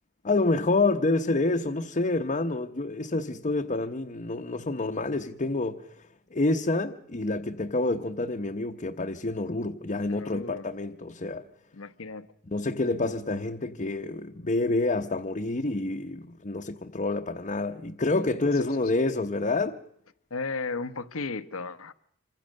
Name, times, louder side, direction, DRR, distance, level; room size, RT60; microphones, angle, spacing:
voice 1, 0.2-5.9 6.3-11.5 12.5-19.8, left 2 dB, 35° left, 0.9 m, -28 dB
voice 2, 10.0-10.6 11.7-12.3 18.4-18.9 20.3-21.9, left 3 dB, 90° left, 1.1 m, -35 dB
26.5 x 24.5 x 6.5 m
head